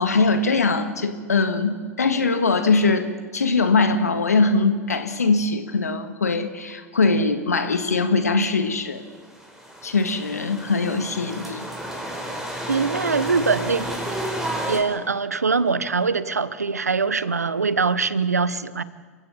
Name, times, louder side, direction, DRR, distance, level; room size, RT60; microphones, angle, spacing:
voice 1, 0.0-3.1 3.3-9.0 9.8-11.6, left 3 dB, 85° left, 8 dB, 1.7 m, -21 dB
sound 1, 9.3-14.8, right 1 dB, 5° right, 4.8 m, -31 dB
voice 2, 12.7-13.9 14.7-18.8, right 4 dB, 90° right, 17 dB, 0.9 m, -23 dB
28.5 x 16.0 x 7.1 m, 1.5 s
figure-of-eight pair, 95°, 8 cm